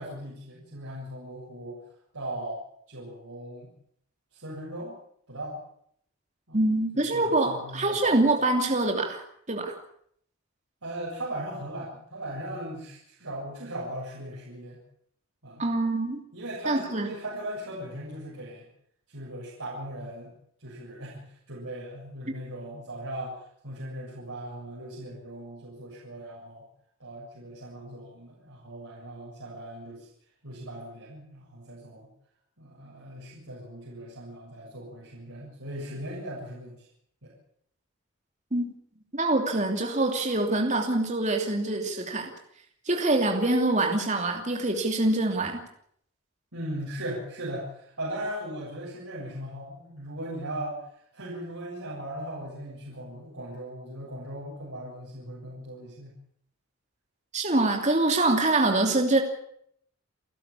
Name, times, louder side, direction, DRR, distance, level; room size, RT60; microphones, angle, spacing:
voice 1, 0.0-1.8 2.1-2.6 2.9-3.7 4.3-5.0 5.3-5.6 6.5-6.6 6.9-8.0 10.8-14.8 15.4-15.7 16.3-18.7 19.1-20.3 20.6-26.7 27.0-30.1 30.4-32.1 32.6-36.9 37.2-37.3 46.5-56.2, right 1 dB, 85° right, -6 dB, 7.4 m, -38 dB
voice 2, 6.5-9.2 9.5-9.7 15.6-16.2 16.7-17.1 38.5-38.7 39.1-42.3 42.9-45.6 57.3-59.2, right 2 dB, 35° right, 3 dB, 2.9 m, -25 dB
30.0 x 12.0 x 8.6 m, 0.69 s
head